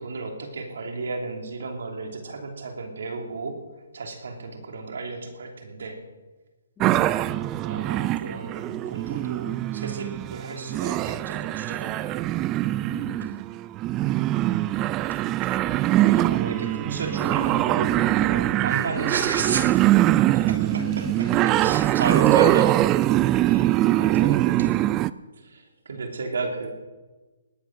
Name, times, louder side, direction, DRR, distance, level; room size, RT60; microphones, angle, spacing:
voice 1, 0.0-3.6 3.9-6.0 7.6-12.2 15.9-21.0 21.3-22.9 23.5-24.8 25.4-26.7, right 3 dB, 70° right, 4 dB, 3.0 m, -33 dB
voice 2, 6.8-7.8 12.8-13.4 16.5-16.8 20.7-21.4 23.8-24.3, left 5 dB, 15° left, 7 dB, 1.1 m, -41 dB
sound 1, 6.8-25.1, right 15 dB, 20° right, 0.3 m, -23 dB
19.0 x 9.0 x 6.2 m, 1.2 s
hypercardioid pair, 150°, 0 cm